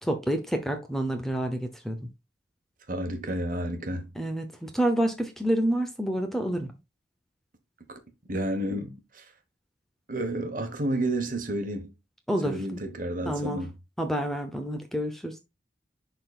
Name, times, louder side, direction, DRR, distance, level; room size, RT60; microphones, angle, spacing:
voice 1, 0.0-2.1 4.1-6.7 12.3-12.9 13.2-13.6 14.0-15.4, right 1 dB, ahead, 0.7 m, -28 dB
voice 2, 2.9-4.1 7.9-8.0 8.3-9.2 10.1-11.9 12.4-13.7, right 1 dB, 45° right, 1.3 m, -31 dB
11.0 x 4.0 x 2.4 m
head